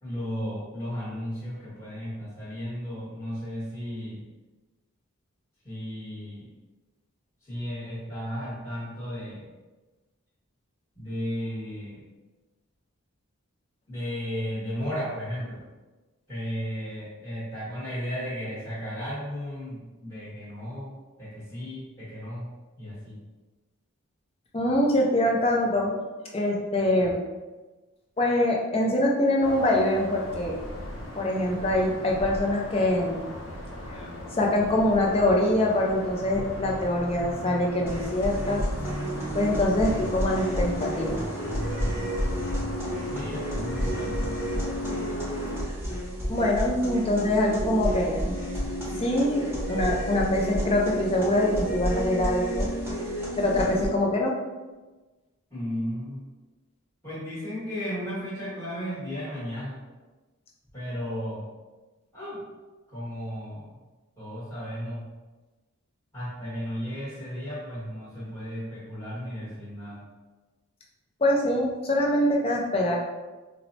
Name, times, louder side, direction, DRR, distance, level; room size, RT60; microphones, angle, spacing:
voice 1, 0.0-4.2 5.6-6.5 7.4-9.5 10.9-12.0 13.9-15.6 16.3-22.5 22.8-23.2 43.1-44.6 55.5-56.2 57.0-59.8 60.7-61.5 62.1-62.4 62.9-63.8 64.2-65.1 66.1-70.0, equal, 10° left, -12 dB, 1.2 m, -34 dB
voice 2, 24.5-25.9 26.3-27.2 28.2-30.5 31.1-33.2 33.9-34.1 34.4-38.6 39.3-41.2 46.3-48.3 49.0-52.7 53.4-54.3 71.2-73.0, left 1 dB, 25° left, -1 dB, 0.4 m, -24 dB
sound 1, 29.4-45.6, left 1 dB, 60° left, 0.7 m, -37 dB
sound 2, 37.8-53.9, equal, 10° right, 0.8 m, -31 dB
4.5 x 2.0 x 2.6 m, 1.2 s
head